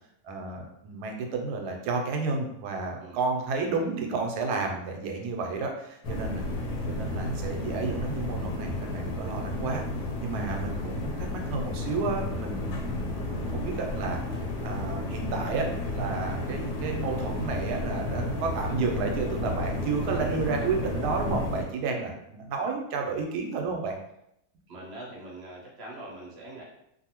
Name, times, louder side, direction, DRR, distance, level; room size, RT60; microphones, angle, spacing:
voice 1, 0.2-6.4 6.9-9.8 10.2-14.2 14.6-23.9, right 4 dB, 90° right, 2 dB, 1.1 m, -31 dB
voice 2, 3.6-3.9 10.5-11.1 24.7-26.6, right 1 dB, 55° right, -4 dB, 0.8 m, -44 dB
sound 1, 6.0-21.7, left 1 dB, 85° left, 1.1 m, -32 dB
2.6 x 2.5 x 2.8 m, 0.79 s
omnidirectional pair, 1.7 m